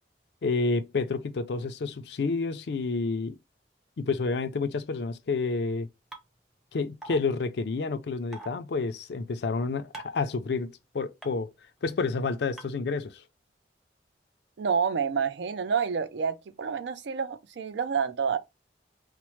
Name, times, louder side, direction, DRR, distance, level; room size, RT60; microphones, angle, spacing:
voice 1, 0.4-3.4 4.0-5.9 6.7-11.5 11.8-13.2, left 4 dB, 65° left, 0.4 m, -29 dB
sound 1, 6.1-6.2 7.0-7.2 8.3-8.5 9.9-10.2 11.2-11.3 12.6-12.7, right 2 dB, 5° right, 0.5 m, -40 dB
voice 2, 14.6-18.4, right 6 dB, 75° right, 0.4 m, -28 dB
4.3 x 2.0 x 3.0 m
head